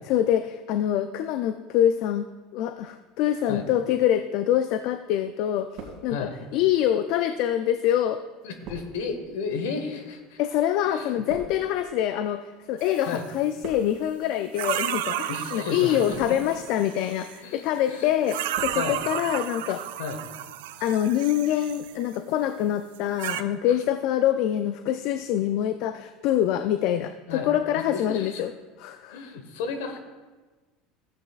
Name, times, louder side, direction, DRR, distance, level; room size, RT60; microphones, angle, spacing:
voice 1, 0.1-2.3 2.5-5.7 6.0-8.2 10.4-19.8 20.8-28.5 28.8-29.2, left 11 dB, 65° left, 10 dB, 0.4 m, -25 dB
sound 1, 4.6-5.2 5.5-6.5 7.2-12.9 13.2-14.2 14.9-15.2 15.8-16.6 17.1-17.5 17.9-18.9 19.1-19.2, right 4 dB, 60° right, 2.3 m, -45 dB
voice 2, 8.4-10.4 10.9-11.1 13.0-13.2 15.3-16.2 17.4-18.1 18.7-19.0 20.0-20.2 23.6-23.8 27.3-27.5 27.9-28.5 29.1-30.0, left 5 dB, 80° left, 6 dB, 1.2 m, -33 dB
sound 2, 12.8-13.3 14.5-17.4 18.2-22.1 22.9-23.4, right 12 dB, 80° right, 0.4 m, -33 dB
14.0 x 8.4 x 2.4 m, 1.3 s
hypercardioid pair, 90°, 0 cm